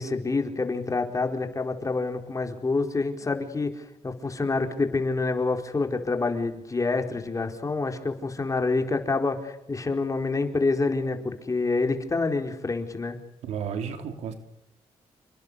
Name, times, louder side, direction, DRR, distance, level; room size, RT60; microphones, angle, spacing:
voice 1, 0.0-13.2, left 3 dB, 30° left, 5 dB, 4.4 m, -27 dB
voice 2, 13.4-14.3, right 7 dB, 85° right, 7 dB, 3.1 m, -32 dB
30.0 x 22.5 x 7.0 m, 0.88 s
cardioid pair, 80°, 11 cm